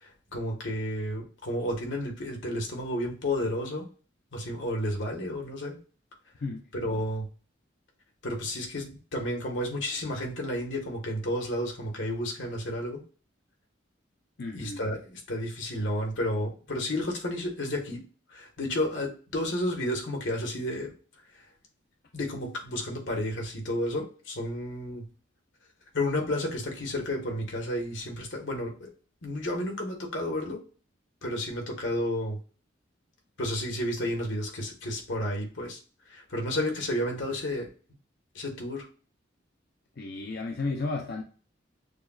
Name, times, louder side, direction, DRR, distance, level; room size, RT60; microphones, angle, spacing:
voice 1, 0.0-3.8 4.3-5.8 6.7-7.3 8.2-13.0 14.5-18.0 18.3-20.9 22.1-25.1 25.9-28.9 29.2-30.6 31.2-32.4 33.4-35.8 36.1-37.7 38.3-38.9, left 1 dB, 70° left, 1 dB, 1.3 m, -31 dB
voice 2, 14.4-14.8 40.0-41.2, left 3 dB, 55° left, 2 dB, 0.5 m, -33 dB
6.6 x 2.3 x 2.3 m, 0.38 s
head